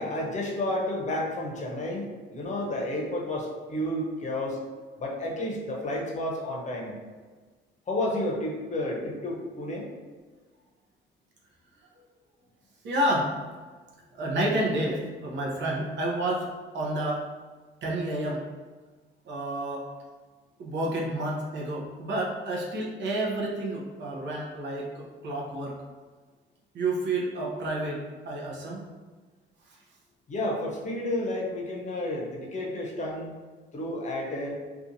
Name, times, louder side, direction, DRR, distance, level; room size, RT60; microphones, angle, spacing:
voice 1, 0.0-4.6 5.0-7.0 7.9-9.9 30.3-33.3 33.7-34.6, left 1 dB, 35° left, -2 dB, 0.7 m, -31 dB
voice 2, 12.8-13.4 14.1-17.3 17.8-18.5 19.3-19.9 20.6-25.7 26.7-28.9, right 1 dB, 65° right, -1 dB, 0.7 m, -30 dB
2.7 x 2.3 x 2.6 m, 1.4 s
cardioid pair, 90°, 20 cm